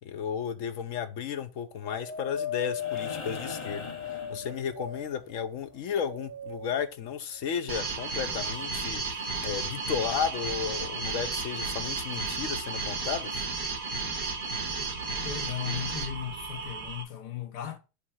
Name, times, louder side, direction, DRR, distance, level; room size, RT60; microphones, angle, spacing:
voice 1, 0.0-13.4, left 7 dB, 60° left, 1.1 m, -34 dB
Wind, 1.8-5.3 5.9-6.9 7.7-7.8, left 6 dB, 35° right, 1.9 m, -37 dB
sound 1, 2.7-5.1 6.9-7.0, left 4 dB, 40° left, 0.4 m, -41 dB
sound 2, 7.7-17.0, right 4 dB, 75° right, 2.1 m, -33 dB
voice 2, 15.2-17.8, left 10 dB, 80° left, 1.6 m, -36 dB
7.3 x 3.4 x 6.2 m
omnidirectional pair, 1.8 m